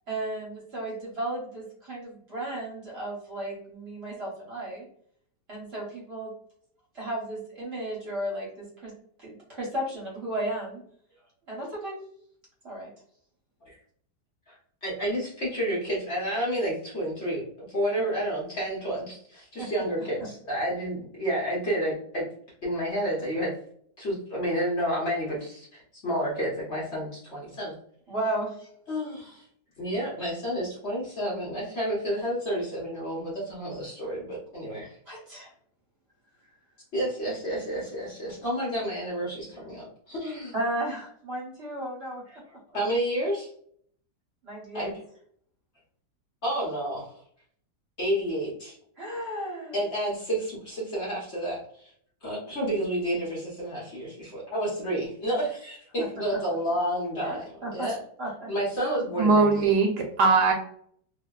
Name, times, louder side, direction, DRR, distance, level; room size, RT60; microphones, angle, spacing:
voice 1, 0.1-4.8 5.5-6.3 6.9-8.9 9.2-10.8 11.5-12.0 12.6-12.9 19.6-19.7 20.2-20.3 28.1-28.7 35.1-35.5 40.5-42.2 44.4-44.9 49.0-49.7 57.2-57.4 57.6-57.9 58.2-58.5, right 1 dB, 45° right, -4 dB, 1.0 m, -34 dB
voice 2, 14.8-22.3 22.6-23.5 24.0-27.8 28.9-29.4 29.8-35.0 36.9-40.5 42.3-42.4 42.7-43.5 44.7-44.9 46.4-47.2 48.0-48.8 49.7-51.9 52.2-57.4 57.7-58.0 58.5-59.7, equal, 45° left, -5 dB, 1.1 m, -30 dB
voice 3, 59.2-60.5, right 4 dB, 75° right, 3 dB, 1.1 m, -20 dB
2.7 x 2.7 x 2.2 m, 0.63 s
omnidirectional pair, 1.9 m